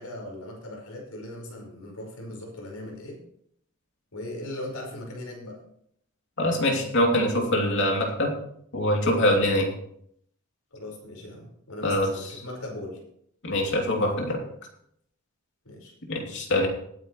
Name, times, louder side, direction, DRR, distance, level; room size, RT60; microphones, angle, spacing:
voice 1, 0.0-3.2 4.1-5.6 10.7-13.0 15.6-15.9, left 1 dB, 90° left, -1 dB, 5.1 m, -39 dB
voice 2, 6.4-8.3 8.7-9.7 11.8-12.1 13.4-14.4 16.1-16.7, left 1 dB, 55° left, 1 dB, 3.0 m, -23 dB
19.5 x 9.4 x 3.2 m, 0.69 s
head